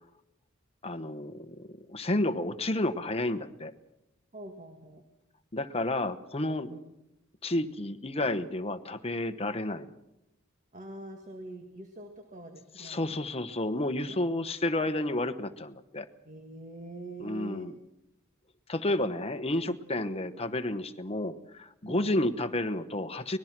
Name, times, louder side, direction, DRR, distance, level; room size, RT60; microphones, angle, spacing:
voice 1, 0.8-3.7 5.5-6.7 7.4-9.9 12.8-16.1 17.2-17.7 18.7-23.4, left 1 dB, 30° left, 9 dB, 1.1 m, -31 dB
voice 2, 4.3-5.0 6.7-6.9 10.7-13.2 14.0-14.2 16.2-17.7 21.8-22.1, right 2 dB, 35° right, 5 dB, 1.9 m, -44 dB
24.5 x 20.0 x 6.1 m, 0.89 s
head